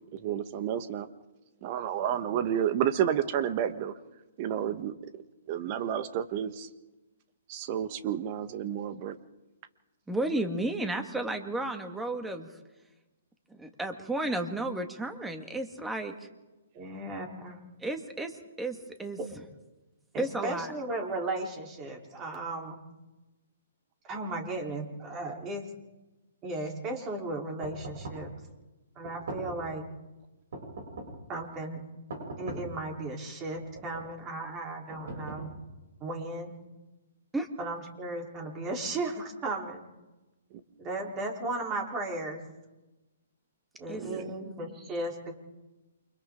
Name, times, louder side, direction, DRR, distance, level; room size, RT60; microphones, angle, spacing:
voice 1, 0.1-1.1 1.6-3.9 4.4-4.9 5.5-6.7 7.5-9.2 16.8-16.9 40.5-40.6 44.0-44.3, right 9 dB, 40° right, 11 dB, 1.6 m, -30 dB
voice 2, 10.1-12.5 13.5-16.3 17.8-19.2 20.2-20.7 37.3-37.5 43.9-44.1, right 2 dB, 5° right, 6 dB, 2.2 m, -33 dB
voice 3, 16.7-17.6 20.1-22.8 24.0-25.6 26.4-28.3 29.0-29.8 31.3-31.8 32.4-35.5 36.0-36.5 37.6-39.8 40.8-42.4 43.8-45.3, right 2 dB, 25° right, 1 dB, 4.2 m, -35 dB
sound 1, 27.6-28.3 29.0-29.8 30.5-31.3 32.1-32.8 33.6-34.2 34.9-35.8, right 2 dB, 65° right, 7.8 m, -41 dB
29.0 x 25.0 x 4.0 m, 1.1 s
hypercardioid pair, 130°, 0 cm